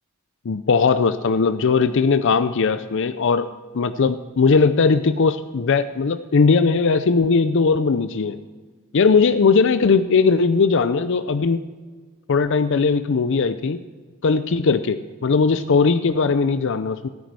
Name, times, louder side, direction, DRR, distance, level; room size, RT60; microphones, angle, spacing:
voice 1, 0.5-3.5 3.7-8.4 8.9-11.6 12.3-13.8 14.2-17.1, left 4 dB, 55° left, 12 dB, 0.5 m, -19 dB
16.5 x 9.3 x 4.7 m, 1.4 s
head